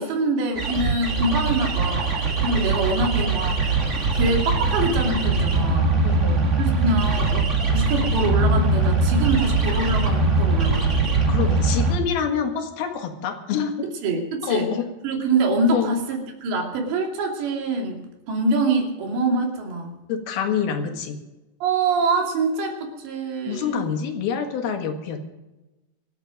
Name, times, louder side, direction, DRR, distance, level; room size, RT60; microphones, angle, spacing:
voice 1, 0.0-3.8 4.1-6.0 6.6-11.1 13.8-14.7 15.0-20.0 21.6-23.9, right 3 dB, 80° right, 1 dB, 4.9 m, -25 dB
sound 1, 0.5-12.0, right 3 dB, 25° right, 1.7 m, -21 dB
voice 2, 6.0-6.5 11.3-13.9 14.5-14.9 15.7-16.0 20.1-21.2 23.5-25.2, left 7 dB, 65° left, 5 dB, 3.4 m, -26 dB
25.5 x 8.7 x 5.2 m, 1.0 s
omnidirectional pair, 5.0 m